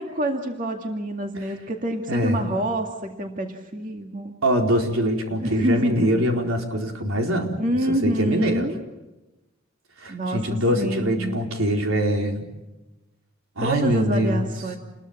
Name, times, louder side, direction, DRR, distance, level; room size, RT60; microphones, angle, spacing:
voice 1, 0.0-4.3 5.4-6.2 7.6-8.8 10.1-11.3 13.6-14.8, right 1 dB, 40° right, 3 dB, 2.2 m, -27 dB
voice 2, 2.1-2.4 4.4-8.7 10.0-12.5 13.6-14.5, equal, 85° right, 2 dB, 4.4 m, -23 dB
28.5 x 22.0 x 7.3 m, 1.1 s
head